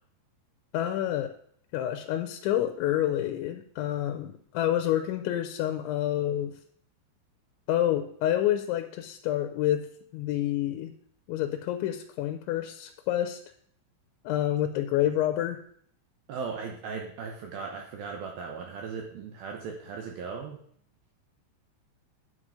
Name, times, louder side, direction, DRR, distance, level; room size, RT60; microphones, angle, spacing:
voice 1, 0.7-1.3 1.7-6.5 7.7-9.9 10.1-10.9 11.3-13.4 14.2-15.6, left 12 dB, 85° left, 7 dB, 3.1 m, -28 dB
voice 2, 16.3-20.6, right 5 dB, 70° right, 2 dB, 2.4 m, -37 dB
8.8 x 8.7 x 4.9 m, 0.63 s
omnidirectional pair, 5.2 m